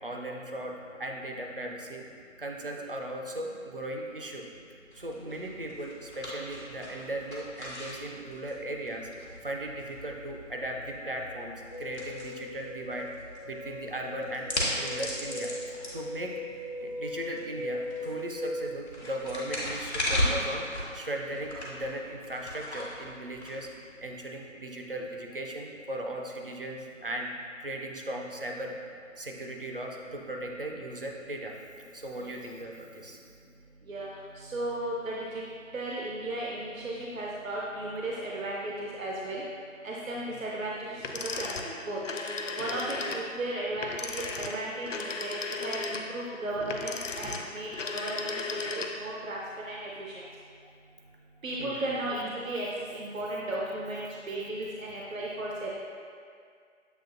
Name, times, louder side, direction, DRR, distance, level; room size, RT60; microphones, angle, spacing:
voice 1, 0.0-2.0 2.4-4.5 4.9-13.1 13.4-15.5 15.9-16.3 16.8-20.7 20.9-23.7 24.0-27.3 27.6-28.8 29.2-31.5 31.9-33.2 40.3-40.4 42.6-42.8 50.6-50.7 51.6-51.9, right 1 dB, 45° right, 1 dB, 0.4 m, -37 dB
sound 1, 4.9-24.1, left 1 dB, 55° left, 1.2 m, -37 dB
sound 2, 11.7-18.9, left 1 dB, 35° left, 0.7 m, -39 dB
voice 2, 34.4-35.4 35.7-39.4 39.8-41.0 41.4-42.0 42.6-45.3 45.6-50.2 51.4-52.7 52.9-55.7, right 1 dB, 85° right, -4 dB, 0.7 m, -35 dB
sound 3, 41.0-49.2, left 3 dB, 70° left, 0.5 m, -35 dB
7.5 x 2.8 x 2.5 m, 2.2 s
figure-of-eight pair, 165°, 39 cm